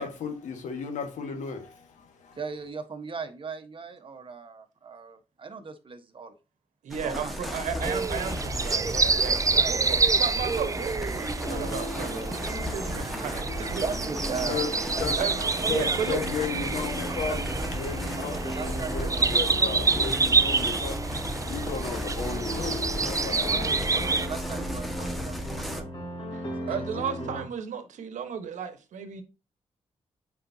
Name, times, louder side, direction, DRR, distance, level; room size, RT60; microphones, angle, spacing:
voice 1, 0.0-2.4 14.5-14.7 15.0-15.2 15.7-17.4 17.7-23.7, left 6 dB, 85° left, 1.6 m, -34 dB
voice 2, 2.4-6.3 7.0-7.3 9.4-10.4 12.4-12.7 13.6-14.6 14.9-16.2 17.1-17.7 18.3-19.3 23.5-25.9 26.6-27.4, right 5 dB, 45° right, 1.3 m, -38 dB
voice 3, 6.8-9.4 9.7-13.8 14.3-14.4 15.2-15.4 15.7-16.2 26.7-29.2, right 7 dB, 85° right, 1.2 m, -34 dB
sound 1, 6.9-25.8, equal, ahead, 1.6 m, -35 dB
sound 2, 7.8-24.3, right 4 dB, 25° right, 0.5 m, -28 dB
sound 3, 11.5-27.4, left 1 dB, 40° left, 3.7 m, -38 dB
7.7 x 5.1 x 2.8 m
cardioid pair, 70°, 12 cm